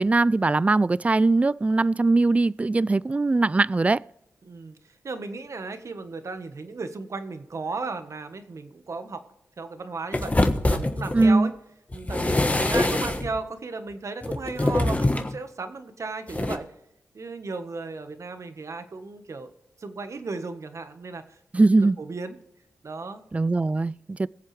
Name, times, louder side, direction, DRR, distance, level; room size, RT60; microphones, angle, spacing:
voice 1, 0.0-4.0 11.1-11.5 21.5-22.0 23.3-24.3, right 3 dB, 20° right, 0.3 m, -21 dB
voice 2, 4.4-4.8 5.0-9.3 9.6-10.4 10.7-11.5 11.9-16.7 17.1-21.2 21.5-22.4 22.8-23.2 23.8-23.9, right 3 dB, 55° right, 1.4 m, -35 dB
sound 1, 10.1-11.3 11.9-13.4 14.2-15.4 16.3-16.6, left 2 dB, 25° left, 1.3 m, -24 dB
22.0 x 7.4 x 3.4 m
cardioid pair, 55°, 6 cm